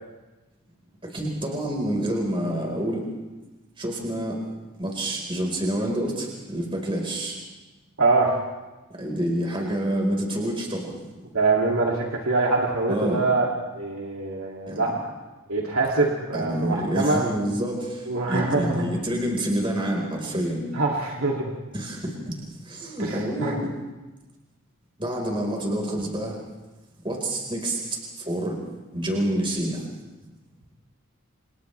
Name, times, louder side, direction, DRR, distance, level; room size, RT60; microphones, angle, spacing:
voice 1, 1.0-3.1 3.8-4.4 4.8-7.4 8.9-11.2 12.9-13.2 14.7-14.8 16.3-20.7 21.7-22.3 22.6-23.7 25.0-26.4 27.0-28.6 28.9-29.9, right 1 dB, 25° right, -1 dB, 4.6 m, -28 dB
voice 2, 8.0-8.3 11.3-13.5 13.8-15.1 15.5-17.2 18.1-18.8 20.7-21.5 23.0-23.5, right 3 dB, 80° right, -2 dB, 2.7 m, -24 dB
30.0 x 28.5 x 3.4 m, 1.1 s
head